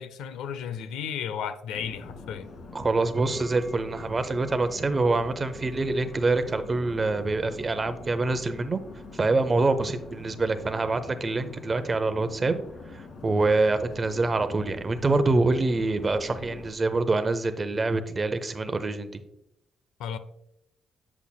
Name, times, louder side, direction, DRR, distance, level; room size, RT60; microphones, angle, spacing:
voice 1, 0.0-2.5 9.7-9.9 20.0-20.2, left 8 dB, 90° left, 0.4 m, -34 dB
sound 1, 1.7-16.7, left 3 dB, 65° left, 1.4 m, -44 dB
voice 2, 2.7-8.8 9.1-12.6 12.9-19.2, right 3 dB, 30° right, 0.7 m, -25 dB
sound 2, 3.1-12.2 12.5-12.8 13.2-13.3, right 3 dB, 15° right, 1.3 m, -55 dB
8.2 x 7.1 x 2.2 m
cardioid pair, 90°, 0 cm